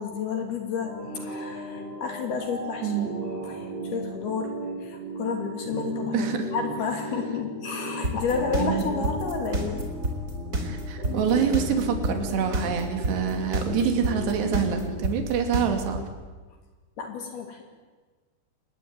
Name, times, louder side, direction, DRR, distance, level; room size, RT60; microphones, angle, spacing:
voice 1, 0.0-3.0 3.3-4.5 4.8-9.8 17.0-17.6, left 5 dB, 60° left, 3 dB, 4.6 m, -31 dB
sound 1, 0.8-15.0, right 1 dB, 35° left, 8.9 m, -35 dB
voice 2, 2.8-3.1 6.1-6.5 8.6-9.1 10.6-16.1, right 8 dB, 70° right, 5 dB, 4.7 m, -26 dB
sound 2, 8.0-16.0, right 1 dB, 20° right, 4.4 m, -27 dB
29.5 x 21.0 x 9.6 m, 1.4 s
omnidirectional pair, 5.1 m